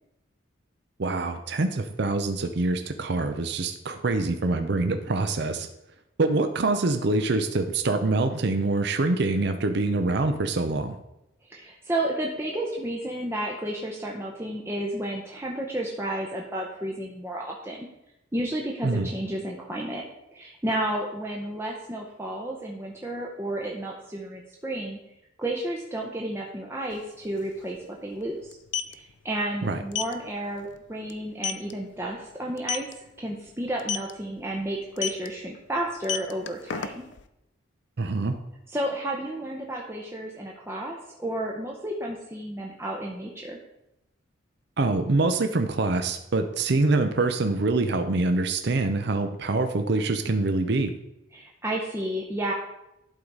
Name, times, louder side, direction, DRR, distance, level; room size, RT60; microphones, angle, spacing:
voice 1, 1.0-5.7 6.2-11.0 18.8-19.1 29.6-29.8 38.0-38.4 44.8-50.9, right 3 dB, 55° right, 7 dB, 0.6 m, -25 dB
voice 2, 11.4-17.9 18.3-20.0 20.3-25.0 25.4-28.6 28.9-37.0 38.7-43.6 51.3-52.5, right 1 dB, 10° right, -2 dB, 0.7 m, -32 dB
sound 1, 26.9-27.0 27.2-27.4 28.5-28.9 29.9-30.1 30.6-30.8 31.1-31.2 31.4-31.7 32.6-32.9 33.8-34.1 35.0-35.3 35.9-37.2, left 8 dB, 65° left, 0.5 m, -29 dB
11.5 x 4.0 x 4.7 m, 0.89 s
head